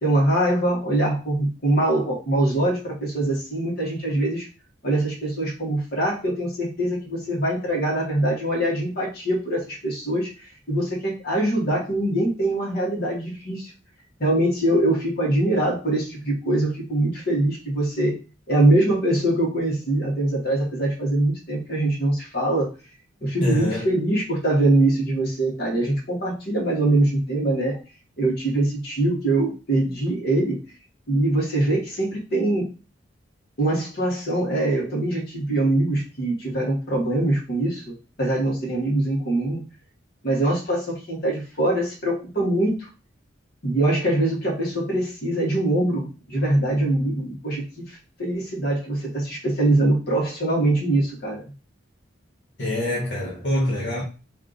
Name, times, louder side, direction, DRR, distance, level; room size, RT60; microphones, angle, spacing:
voice 1, 0.0-4.5 4.8-10.3 10.7-13.7 14.2-18.2 18.5-22.7 23.2-27.8 28.2-30.6 31.1-32.7 33.6-39.6 40.2-42.9 43.6-51.4, right 1 dB, 55° left, 1.7 m, -23 dB
voice 2, 23.4-24.0 52.6-54.0, left 1 dB, 70° left, 1.4 m, -25 dB
3.3 x 2.8 x 3.9 m
head